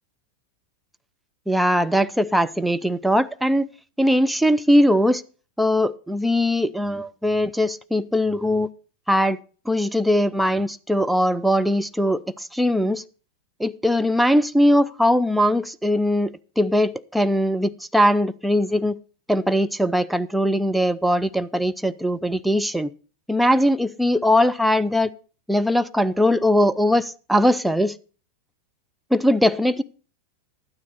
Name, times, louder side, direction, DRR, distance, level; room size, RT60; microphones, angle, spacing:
voice 1, 1.5-3.7 4.0-5.2 5.6-8.7 9.1-9.4 9.7-13.0 13.6-19.0 19.3-22.9 23.3-25.1 25.5-28.0 29.1-29.8, equal, ahead, 0.5 m, -20 dB
12.0 x 9.5 x 4.1 m
figure-of-eight pair, 90°, 0 cm